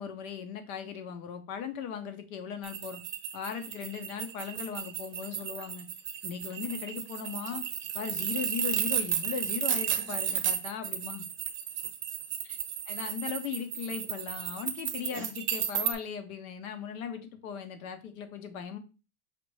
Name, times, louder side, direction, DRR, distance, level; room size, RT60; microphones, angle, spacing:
voice 1, 0.0-3.0 3.3-5.9 6.2-7.6 7.9-11.2 12.9-18.8, left 8 dB, 90° left, 8 dB, 0.9 m, -38 dB
sound 1, 2.6-15.9, right 9 dB, 30° right, 0.6 m, -33 dB
5.7 x 2.5 x 3.2 m, 0.32 s
supercardioid pair, 150°, 41 cm